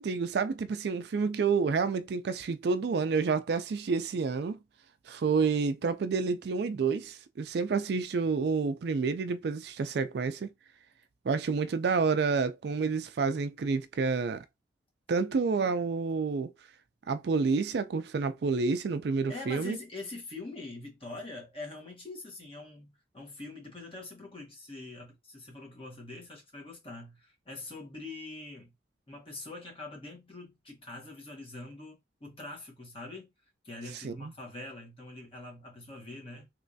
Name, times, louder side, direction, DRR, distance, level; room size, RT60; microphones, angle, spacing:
voice 1, 0.0-4.6 5.1-10.5 11.2-14.4 15.1-16.5 17.1-19.8 34.0-34.3, right 4 dB, 60° right, 0.4 m, -29 dB
voice 2, 19.3-28.7 29.1-33.3 33.6-36.5, left 2 dB, 30° left, 1.4 m, -44 dB
3.2 x 3.0 x 2.6 m
head